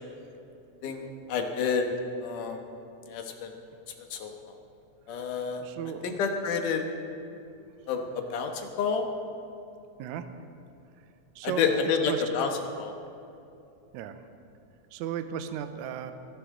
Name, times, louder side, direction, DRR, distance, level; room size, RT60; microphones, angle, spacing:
voice 1, 0.8-1.9 2.2-2.6 3.1-3.5 4.1-4.3 5.1-5.6 6.0-6.9 7.9-9.1 11.4-12.5 12.8-12.9, left 5 dB, 90° left, 4 dB, 2.8 m, -29 dB
voice 2, 5.6-6.2 10.0-10.3 11.4-11.7 12.1-12.2 13.9-14.3 14.9-16.1, right 9 dB, 75° right, 9 dB, 2.0 m, -35 dB
24.5 x 11.0 x 3.7 m, 2.7 s
omnidirectional pair, 3.5 m